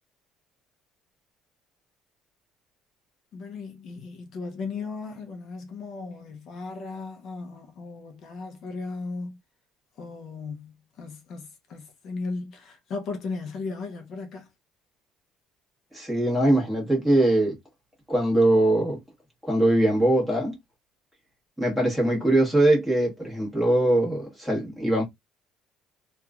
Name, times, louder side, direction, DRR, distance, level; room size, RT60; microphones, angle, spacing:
voice 1, 3.3-9.4 10.0-14.5, left 4 dB, 50° left, 0.7 m, -36 dB
voice 2, 15.9-17.5 18.1-19.0 19.4-20.5 21.6-25.0, right 1 dB, ahead, 1.3 m, -22 dB
2.9 x 2.3 x 2.3 m
cardioid pair, 155°, 0 cm